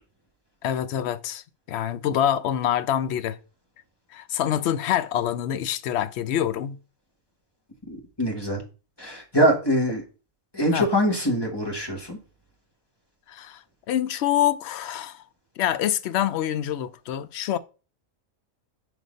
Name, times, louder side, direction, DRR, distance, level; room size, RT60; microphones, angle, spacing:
voice 1, 0.6-3.4 4.1-6.8 10.7-10.9 13.3-15.2 15.6-17.6, left 10 dB, 65° left, 0.7 m, -26 dB
voice 2, 7.9-8.6 9.0-10.0 10.5-12.2, equal, 20° left, 1.5 m, -23 dB
6.3 x 4.1 x 5.1 m
omnidirectional pair, 1.4 m